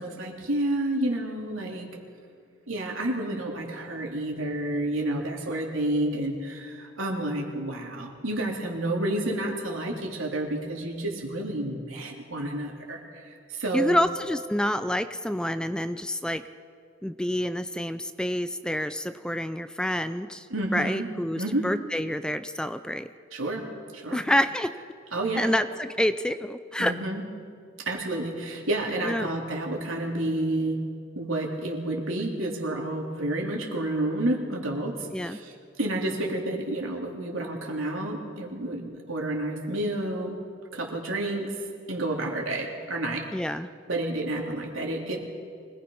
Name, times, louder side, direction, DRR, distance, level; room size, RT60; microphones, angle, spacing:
voice 1, 0.0-1.9 2.7-14.0 20.5-21.1 21.4-21.7 23.3-23.7 23.9-24.2 25.1-25.5 26.8-27.2 27.8-30.8 31.1-35.5 35.8-40.4 40.7-41.5 41.9-43.3 43.9-45.2, right 1 dB, 75° right, 0 dB, 3.2 m, -30 dB
voice 2, 13.7-16.4 17.0-20.5 20.7-23.1 24.1-24.7 25.4-26.9 29.0-29.3 35.1-35.4 43.3-43.7, left 1 dB, 5° left, 11 dB, 0.4 m, -28 dB
24.5 x 19.0 x 5.6 m, 2.3 s
head